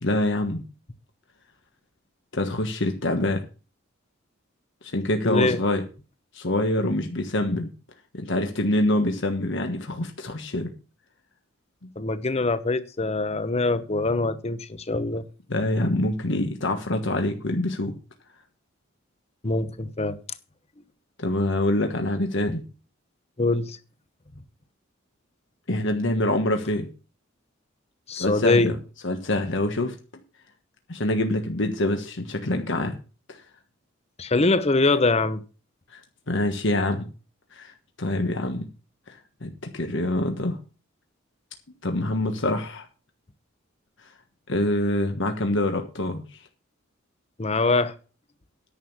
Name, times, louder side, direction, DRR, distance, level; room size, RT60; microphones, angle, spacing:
voice 1, 0.0-0.6 2.3-3.4 4.8-5.8 6.3-7.7 8.1-10.7 11.8-11.9 15.5-18.0 21.2-22.6 25.7-26.9 28.1-28.8 29.0-29.9 30.9-33.0 33.3-33.4 35.9-36.0 36.3-37.1 37.5-38.7 39.1-39.2 39.4-40.6 41.8-42.9 44.5-46.2, left 1 dB, 60° left, 1.4 m, -25 dB
voice 2, 5.2-5.6 12.0-15.2 19.4-20.2 23.4-23.8 28.1-28.7 34.2-35.4 47.4-47.9, left 3 dB, 30° left, 0.9 m, -23 dB
10.5 x 6.3 x 7.2 m
head